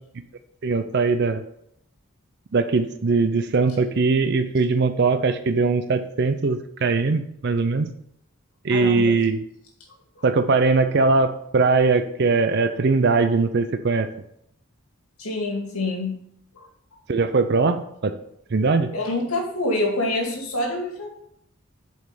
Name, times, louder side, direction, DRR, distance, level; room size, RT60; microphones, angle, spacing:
voice 1, 0.6-1.4 2.5-7.9 8.6-9.4 10.2-14.1 17.1-18.2 18.5-18.9, right 4 dB, 50° right, 10 dB, 0.5 m, -21 dB
voice 2, 8.7-9.2 10.2-10.3 15.2-16.2 18.9-21.1, left 2 dB, 85° left, 0 dB, 2.3 m, -26 dB
7.8 x 5.2 x 5.3 m, 0.73 s
head